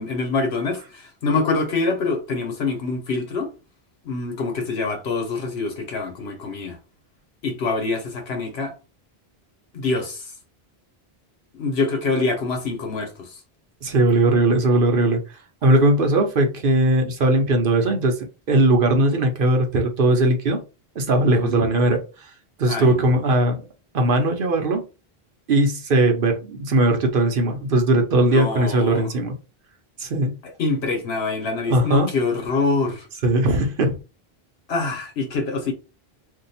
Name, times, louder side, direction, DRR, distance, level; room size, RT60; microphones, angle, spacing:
voice 1, 0.0-3.5 4.0-6.8 7.4-8.7 9.7-10.3 11.5-13.4 21.2-21.6 22.7-23.1 28.2-29.1 30.4-33.1 34.7-35.7, left 3 dB, 85° left, 1.2 m, -25 dB
voice 2, 13.8-15.2 15.6-20.6 21.0-22.3 22.6-23.6 23.9-24.8 25.5-29.4 30.0-30.4 31.7-32.1 33.2-34.0, right 1 dB, 65° right, 0.9 m, -19 dB
2.6 x 2.3 x 4.1 m
omnidirectional pair, 1.0 m